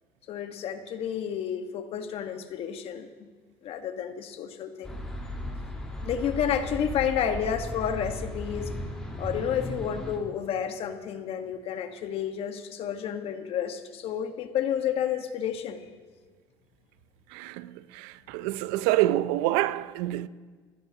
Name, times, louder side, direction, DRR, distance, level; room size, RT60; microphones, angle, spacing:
voice 1, 0.3-3.3 3.6-5.0 6.0-8.7 9.2-16.0, left 8 dB, 60° left, 1.4 m, -31 dB
sound 1, 4.8-10.2, left 1 dB, 5° left, 3.8 m, -36 dB
voice 2, 17.3-20.3, right 15 dB, 80° right, 0.6 m, -27 dB
28.0 x 15.5 x 2.9 m
supercardioid pair, 90°, 11 cm